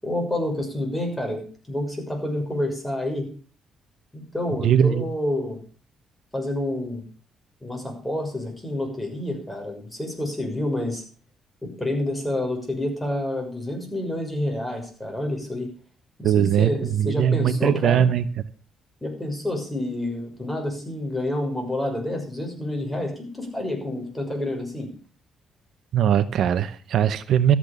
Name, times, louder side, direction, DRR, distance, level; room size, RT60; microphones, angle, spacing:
voice 1, 0.0-3.3 4.1-5.6 6.3-7.1 7.6-11.0 11.6-15.7 16.2-18.1 19.0-24.9, left 1 dB, 10° left, 6.4 m, -28 dB
voice 2, 4.6-5.0 16.2-18.3 25.9-27.6, right 9 dB, 70° right, 0.8 m, -20 dB
13.5 x 8.7 x 6.9 m
cardioid pair, 90°, 0 cm